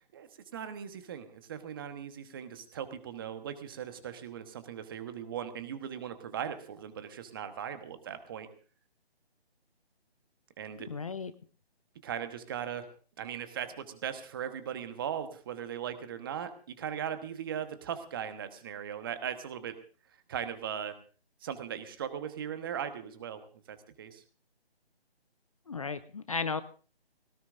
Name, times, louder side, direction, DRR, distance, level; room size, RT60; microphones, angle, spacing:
voice 1, 0.1-8.5 10.6-10.9 12.0-12.9 13.2-19.7 20.3-21.0 21.4-23.4 23.7-24.2, right 8 dB, 20° right, 9 dB, 1.2 m, -38 dB
voice 2, 10.9-11.3 25.7-26.6, left 4 dB, 35° left, 13 dB, 0.6 m, -34 dB
21.0 x 18.0 x 2.6 m, 0.38 s
figure-of-eight pair, 160°, 32 cm